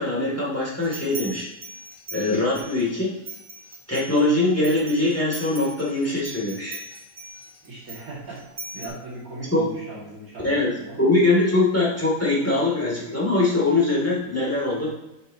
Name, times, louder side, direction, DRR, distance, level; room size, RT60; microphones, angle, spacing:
voice 1, 0.0-1.5 2.1-3.1 3.9-6.8 9.5-9.7 10.4-14.9, left 2 dB, 10° left, -5 dB, 2.5 m, -22 dB
sound 1, 0.8-2.8 3.2-8.9, right 1 dB, 35° right, 1.6 m, -40 dB
voice 2, 7.6-11.1, right 2 dB, 85° right, -5 dB, 2.7 m, -38 dB
8.1 x 7.5 x 2.9 m, 0.97 s
omnidirectional pair, 1.5 m